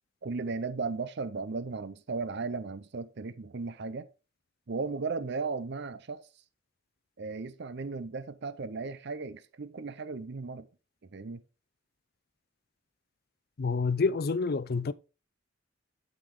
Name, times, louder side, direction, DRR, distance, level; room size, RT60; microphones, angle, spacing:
voice 1, 0.2-4.1 4.7-6.2 7.2-10.7 11.1-11.4, right 4 dB, 60° right, 0.6 m, -36 dB
voice 2, 13.6-14.9, left 4 dB, 50° left, 0.5 m, -28 dB
12.0 x 5.2 x 3.8 m
head